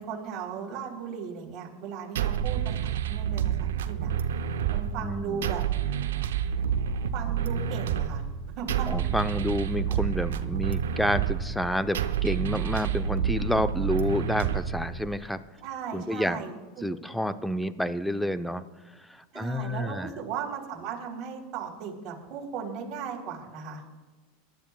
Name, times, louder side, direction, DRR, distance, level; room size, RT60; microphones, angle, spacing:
voice 1, 0.0-4.1 4.7-5.6 7.1-8.2 8.6-8.9 15.6-16.8 19.3-23.8, right 6 dB, 45° right, -2 dB, 3.5 m, -37 dB
sound 1, 2.2-15.2, right 9 dB, 80° right, 0.7 m, -29 dB
voice 2, 5.0-5.5 8.9-15.4 15.9-16.4 16.8-18.6 19.0-20.1, left 1 dB, 5° left, 11 dB, 0.7 m, -29 dB
22.0 x 12.0 x 2.4 m, 1.3 s
hypercardioid pair, 95°, 0 cm